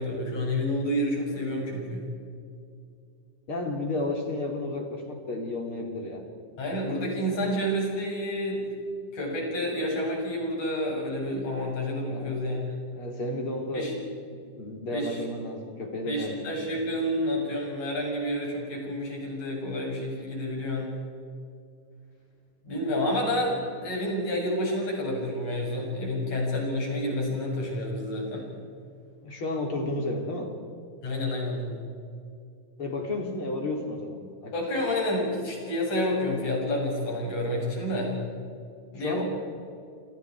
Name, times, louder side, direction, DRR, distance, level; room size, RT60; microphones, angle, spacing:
voice 1, 0.0-2.1 6.6-8.8 9.1-12.9 13.7-13.9 14.9-15.2 16.1-21.0 22.6-28.5 31.0-31.8 34.5-38.2 38.9-39.2, left 1 dB, 65° left, -2 dB, 8.4 m, -29 dB
voice 2, 3.5-6.2 12.0-12.4 12.9-13.9 14.3-16.8 29.2-30.5 32.8-34.5 39.0-39.2, left 2 dB, 40° left, 2 dB, 3.8 m, -32 dB
29.5 x 27.0 x 4.8 m, 2.5 s
omnidirectional pair, 3.6 m